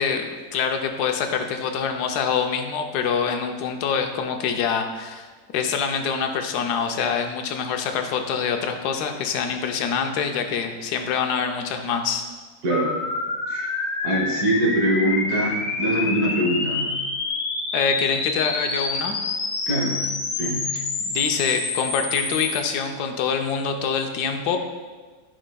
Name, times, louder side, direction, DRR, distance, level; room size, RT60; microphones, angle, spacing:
voice 1, 0.0-5.3 5.5-12.3 17.7-19.2 20.7-24.6, left 6 dB, 90° left, 5 dB, 1.2 m, -25 dB
voice 2, 12.6-13.0 13.5-13.7 14.0-16.9 19.7-20.0 20.4-20.7, right 1 dB, 75° right, -1 dB, 1.7 m, -23 dB
sound 1, 12.7-22.6, left 3 dB, 55° left, 0.6 m, -27 dB
10.0 x 5.0 x 2.2 m, 1.4 s
omnidirectional pair, 1.7 m